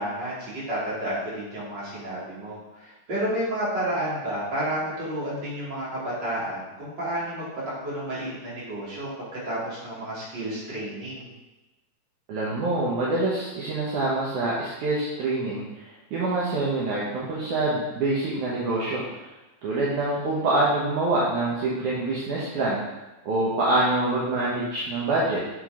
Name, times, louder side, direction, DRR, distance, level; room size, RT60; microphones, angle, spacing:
voice 1, 0.0-7.5 7.8-11.3, right 1 dB, 30° right, -8 dB, 3.0 m, -31 dB
voice 2, 12.3-19.0 19.6-22.8 23.3-25.4, right 2 dB, 65° right, -7 dB, 2.4 m, -25 dB
8.0 x 6.0 x 3.8 m, 1.1 s
omnidirectional pair, 4.1 m